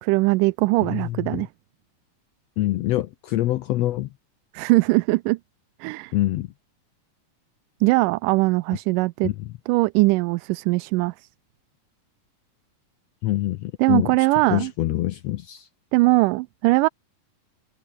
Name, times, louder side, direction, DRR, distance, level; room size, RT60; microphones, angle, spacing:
voice 1, 0.0-1.5 4.5-5.4 5.8-6.1 7.8-9.3 9.7-11.3 13.8-14.7 15.9-16.9, right 22 dB, 85° right, 2.1 m, -20 dB
voice 2, 0.8-1.5 2.6-4.1 6.1-6.5 9.2-9.5 13.2-15.7, left 15 dB, 85° left, 1.4 m, -25 dB
omnidirectional pair, 3.8 m